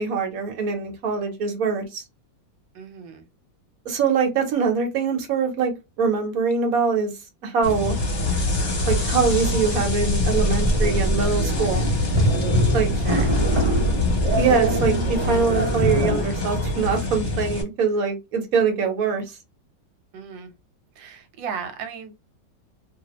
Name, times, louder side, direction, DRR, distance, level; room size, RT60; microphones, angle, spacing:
voice 1, 0.0-2.0 3.8-7.1 7.4-8.0 8.9-11.9 12.7-12.9 14.4-19.2, right 5 dB, 55° right, 1.2 m, -23 dB
voice 2, 2.7-3.3 12.9-13.3 20.1-20.5 21.0-22.2, right 7 dB, 80° right, 1.4 m, -36 dB
sound 1, 7.6-17.6, left 2 dB, 40° left, 1.0 m, -24 dB
sound 2, 10.6-16.2, right 1 dB, 25° right, 0.6 m, -24 dB
2.8 x 2.5 x 2.9 m
omnidirectional pair, 2.0 m